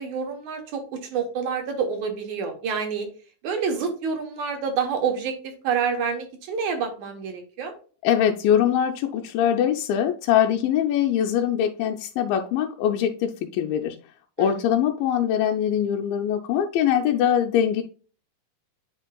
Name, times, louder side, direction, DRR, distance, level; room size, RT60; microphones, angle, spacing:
voice 1, 0.0-3.1 3.4-7.7 14.4-14.6, right 6 dB, 65° right, 5 dB, 2.2 m, -28 dB
voice 2, 8.0-14.0 14.4-17.8, left 9 dB, 85° left, 2 dB, 2.3 m, -22 dB
9.4 x 4.5 x 2.3 m, 0.39 s
omnidirectional pair, 4.1 m